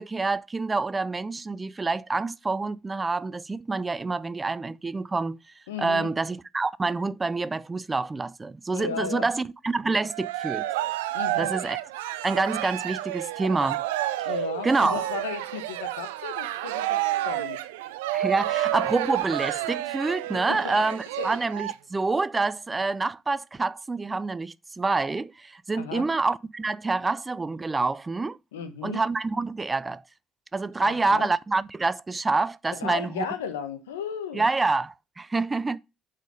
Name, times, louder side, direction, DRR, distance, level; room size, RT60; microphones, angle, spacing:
voice 1, 0.0-5.4 5.8-10.6 11.4-11.8 12.2-13.8 14.2-14.3 14.6-15.0 18.1-28.4 28.8-30.0 30.5-33.3 34.3-35.8, right 3 dB, 25° right, 0.5 m, -27 dB
voice 2, 5.7-6.1 8.7-9.3 11.1-11.5 14.2-17.6 20.5-20.6 21.2-21.3 25.8-26.0 28.5-29.0 30.8-31.3 32.8-34.5, left 7 dB, 85° left, 1.0 m, -35 dB
Cheering, 10.0-21.7, right 14 dB, 80° right, 0.5 m, -30 dB
8.1 x 4.2 x 5.1 m
hypercardioid pair, 50°, 0 cm